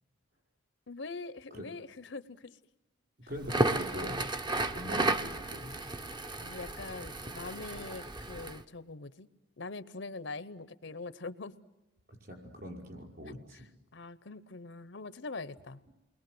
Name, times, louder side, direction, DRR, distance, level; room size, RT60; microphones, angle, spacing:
voice 1, 0.9-2.6 6.4-9.3 9.6-11.6 13.5-13.7 13.9-15.8, left 3 dB, 65° left, 0.8 m, -43 dB
voice 2, 3.3-4.3 4.6-5.8 12.2-13.6, equal, 50° right, 5.5 m, -42 dB
Crackle, 3.4-8.6, right 2 dB, 20° right, 0.8 m, -33 dB
29.5 x 21.5 x 7.8 m
head